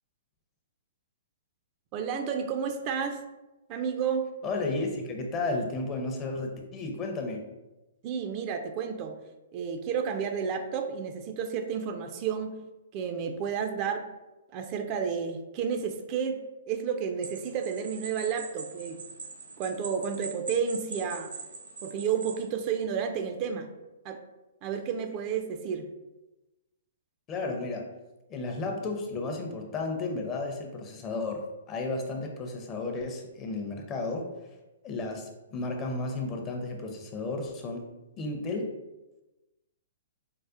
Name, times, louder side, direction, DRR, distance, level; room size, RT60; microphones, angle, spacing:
voice 1, 1.9-3.2 3.7-4.3 8.0-9.1 9.5-12.6 12.9-14.1 14.5-16.4 16.7-19.0 19.6-21.3 21.8-23.7 24.0-24.2 24.6-25.9, right 7 dB, 35° right, 5 dB, 0.3 m, -31 dB
voice 2, 4.4-7.4 27.3-27.9 28.3-34.3 34.8-37.9 38.2-38.7, left 3 dB, 25° left, 2 dB, 0.5 m, -33 dB
sound 1, 17.2-22.5, right 4 dB, 85° right, 0.9 m, -42 dB
4.7 x 2.1 x 2.4 m, 1.0 s
hypercardioid pair, 130°, 0 cm